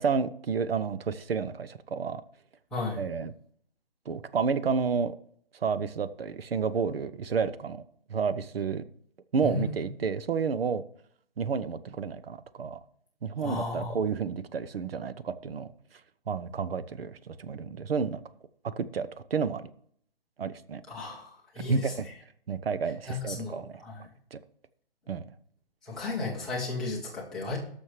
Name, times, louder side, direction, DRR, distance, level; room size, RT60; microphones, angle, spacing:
voice 1, 0.0-2.2 3.0-3.3 4.1-5.1 5.6-7.8 8.1-8.8 9.3-10.8 11.4-12.8 13.2-15.7 16.3-18.2 18.6-19.6 20.4-20.8 21.7-22.0 22.5-23.8 24.3-24.4 25.1-25.3, right 5 dB, 80° right, 0.8 m, -30 dB
voice 2, 2.7-3.0 9.4-9.9 13.4-14.0 20.9-22.1 23.1-24.1 25.8-27.6, left 3 dB, ahead, 0.7 m, -34 dB
18.0 x 6.4 x 3.2 m
hypercardioid pair, 170°, 29 cm